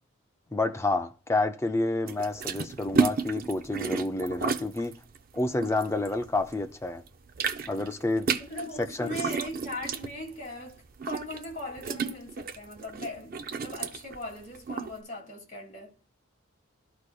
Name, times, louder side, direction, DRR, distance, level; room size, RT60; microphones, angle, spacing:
voice 1, 0.5-4.9 5.3-7.0 7.7-8.3 8.8-9.1, left 2 dB, 15° left, 0.4 m, -29 dB
sound 1, 2.1-6.6 6.9-14.9, right 5 dB, 45° right, 0.5 m, -32 dB
voice 2, 8.4-15.9, left 1 dB, 40° left, 2.3 m, -39 dB
13.0 x 4.8 x 2.2 m
head